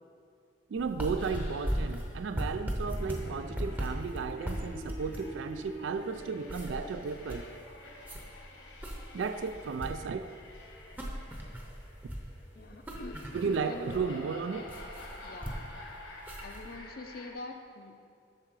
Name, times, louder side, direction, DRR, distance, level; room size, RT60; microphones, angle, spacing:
voice 1, 0.7-7.4 9.1-10.3 13.3-14.7, right 5 dB, 70° right, 9 dB, 0.3 m, -34 dB
sound 1, 0.8-16.8, equal, 10° right, 0.7 m, -38 dB
sound 2, 1.2-17.3, left 1 dB, 70° left, 1.4 m, -48 dB
voice 2, 12.6-14.0 15.2-15.6 16.4-18.0, left 3 dB, 45° left, 5 dB, 0.6 m, -45 dB
7.5 x 6.6 x 4.7 m, 2.3 s
head